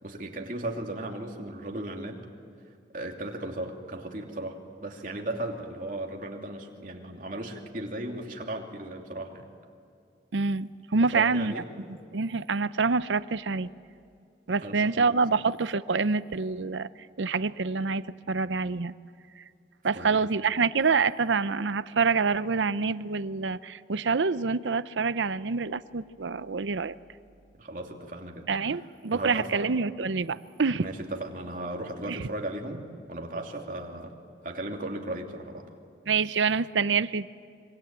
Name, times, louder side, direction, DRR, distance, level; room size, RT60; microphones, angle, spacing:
voice 1, 0.0-2.2 2.9-9.5 11.0-11.7 14.6-15.1 19.9-20.2 27.6-28.5 28.7-28.8 29.1-29.6 30.8-34.1 34.4-35.7, right 1 dB, 45° right, 1 dB, 2.9 m, -36 dB
voice 2, 10.3-11.5 12.1-13.7 14.5-16.9 17.2-18.9 19.8-26.9 28.5-30.9 32.1-32.2 36.1-37.3, right 4 dB, 90° right, 15 dB, 0.7 m, -26 dB
25.5 x 24.0 x 9.0 m, 2.4 s
head